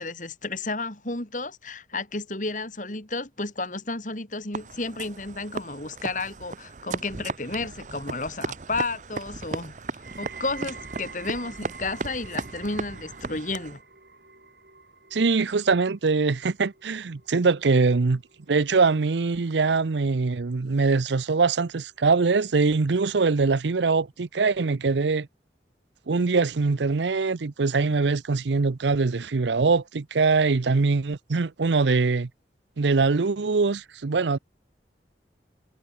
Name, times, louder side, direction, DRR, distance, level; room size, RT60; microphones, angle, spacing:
voice 1, 0.0-9.8 10.2-13.8, left 3 dB, 45° left, 3.4 m, -32 dB
sound 1, 4.5-13.8, right 3 dB, 45° right, 0.7 m, -36 dB
sound 2, 10.0-21.1 21.4-22.0 22.7-22.8, right 5 dB, 60° right, 4.9 m, -49 dB
voice 2, 15.1-18.2 18.5-25.3 26.1-32.3 32.8-34.4, right 4 dB, 85° right, 0.7 m, -23 dB
head